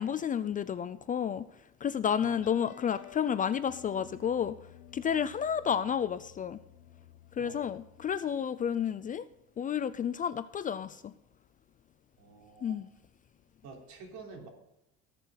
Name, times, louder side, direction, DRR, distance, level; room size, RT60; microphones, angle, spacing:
voice 1, 0.0-1.5 1.8-4.6 4.9-6.6 7.4-9.3 9.6-11.1 12.6-12.9, left 8 dB, 25° left, 0.4 m, -31 dB
sound 1, 2.2-9.3, left 11 dB, 80° left, 1.5 m, -54 dB
voice 2, 7.4-7.7 12.2-12.8 13.6-14.5, right 4 dB, 65° right, 3.6 m, -49 dB
18.0 x 6.8 x 3.9 m
cardioid pair, 135°, 30 cm